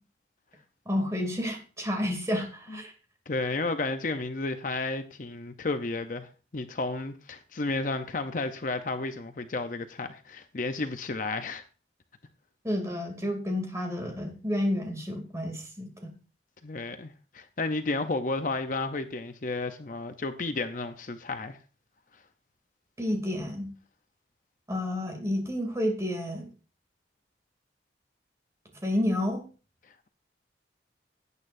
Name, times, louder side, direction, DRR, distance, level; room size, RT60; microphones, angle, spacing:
voice 1, 0.9-2.9 12.6-16.1 23.0-23.7 24.7-26.5 28.8-29.4, left 1 dB, 15° right, 2.7 m, -30 dB
voice 2, 3.3-11.6 16.6-21.6, left 3 dB, 45° left, 0.7 m, -32 dB
17.5 x 8.7 x 2.6 m
head